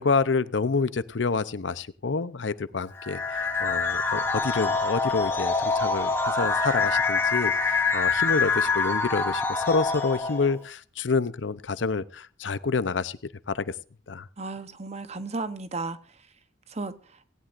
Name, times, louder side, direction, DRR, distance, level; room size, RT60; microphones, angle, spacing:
voice 1, 0.0-13.2 13.5-13.7 14.1-14.3, left 4 dB, 90° left, 0.7 m, -28 dB
sound 1, 3.0-10.6, left 4 dB, 15° left, 2.3 m, -25 dB
voice 2, 14.4-16.2 16.7-17.2, right 3 dB, 35° right, 1.0 m, -34 dB
17.5 x 17.5 x 2.6 m
head